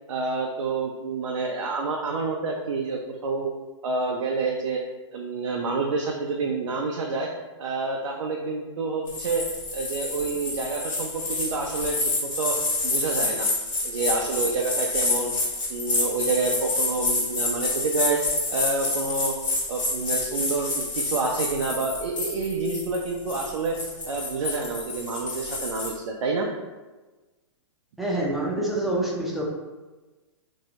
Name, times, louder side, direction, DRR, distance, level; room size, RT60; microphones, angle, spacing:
voice 1, 0.1-3.5 3.8-4.8 5.1-7.3 7.6-9.4 9.7-12.6 12.8-13.5 13.8-15.3 15.7-18.2 18.5-19.3 19.7-23.8 24.1-26.5 28.6-28.7, right 3 dB, 85° right, 0 dB, 0.4 m, -28 dB
sound 1, 9.1-25.9, left 2 dB, 85° left, 1.1 m, -28 dB
voice 2, 28.0-29.4, right 1 dB, ahead, -4 dB, 0.4 m, -26 dB
2.6 x 2.1 x 2.8 m, 1.2 s
hypercardioid pair, 140°, 16 cm